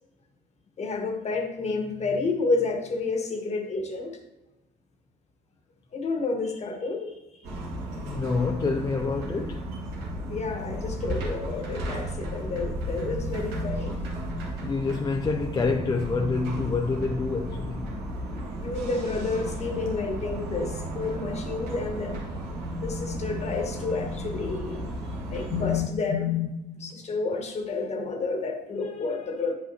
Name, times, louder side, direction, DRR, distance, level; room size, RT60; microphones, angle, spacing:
voice 1, 0.8-4.2 5.9-7.2 10.3-14.0 18.6-22.2 22.8-24.8 25.3-29.5, left 4 dB, 40° left, 1.4 m, -30 dB
sound 1, 7.4-25.8, right 1 dB, 85° right, 1.8 m, -34 dB
voice 2, 8.0-9.7 14.6-17.9, left 4 dB, 25° left, 0.6 m, -27 dB
8.4 x 7.9 x 2.8 m
cardioid pair, 110°, 17 cm